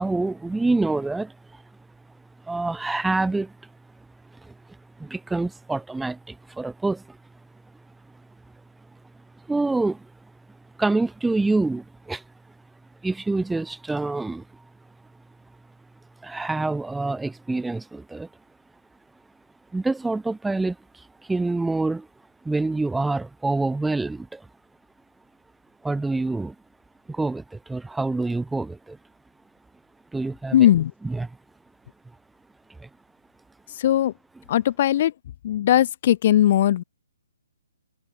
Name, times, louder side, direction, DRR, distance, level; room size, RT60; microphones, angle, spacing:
voice 1, 0.0-1.3 2.5-3.5 4.4-4.5 5.0-7.2 9.5-10.1 10.8-12.2 13.0-14.4 16.2-18.3 19.7-20.8 21.3-22.1 22.4-24.4 25.8-26.5 27.1-29.0 30.1-30.5 31.2-31.3 32.8-32.9, right 3 dB, 5° right, 0.4 m, -26 dB
voice 2, 30.5-30.9 33.7-34.1 34.5-35.1 35.4-36.8, left 12 dB, 45° left, 0.6 m, -19 dB
figure-of-eight pair, 135°, 0 cm